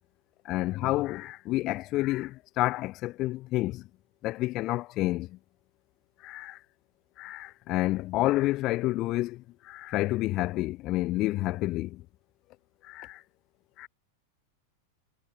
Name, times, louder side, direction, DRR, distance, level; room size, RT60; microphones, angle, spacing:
voice 1, 0.4-3.9 4.2-5.4 6.2-6.6 7.2-12.0 12.8-13.2 13.8-13.9, left 17 dB, 35° left, 2.8 m, -29 dB
figure-of-eight pair, 90°, 0 cm